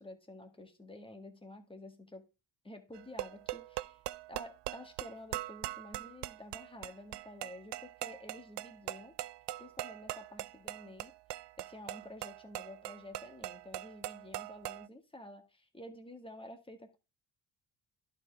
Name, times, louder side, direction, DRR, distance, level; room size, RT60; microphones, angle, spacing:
voice 1, 0.0-2.3 2.6-4.0 4.3-9.1 9.6-11.1 11.6-17.0, left 1 dB, 10° left, 6 dB, 1.7 m, -50 dB
sound 1, 2.9-14.9, right 16 dB, 70° right, 0.5 m, -42 dB
11.0 x 5.0 x 3.4 m, 0.28 s
cardioid pair, 75°, 44 cm